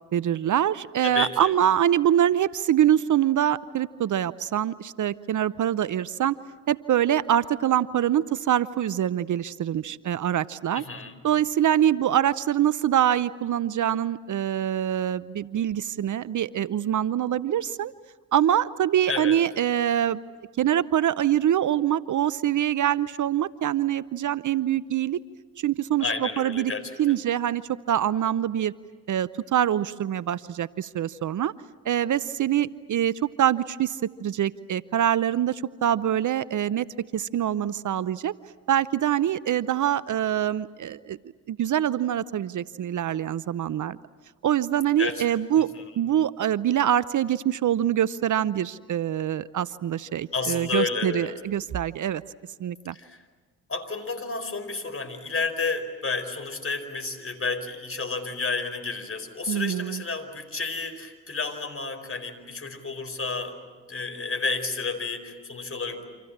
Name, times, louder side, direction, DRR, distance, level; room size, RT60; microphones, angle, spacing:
voice 1, 0.1-6.4 6.7-10.8 11.2-17.9 18.3-20.2 20.6-25.2 25.6-26.7 27.0-28.7 29.1-31.5 31.8-36.9 37.1-38.3 38.7-41.2 41.5-44.0 44.4-45.7 46.0-52.2 52.6-53.0 59.5-60.0, right 10 dB, 50° right, 18 dB, 0.7 m, -24 dB
voice 2, 1.0-1.5 10.7-11.2 19.1-19.4 26.0-27.2 45.0-45.2 45.6-45.7 50.3-51.3 52.9-53.2 53.7-63.6 63.9-66.0, left 4 dB, 35° left, 8 dB, 4.8 m, -31 dB
29.0 x 26.5 x 7.4 m, 1.4 s
hypercardioid pair, 45°, 38 cm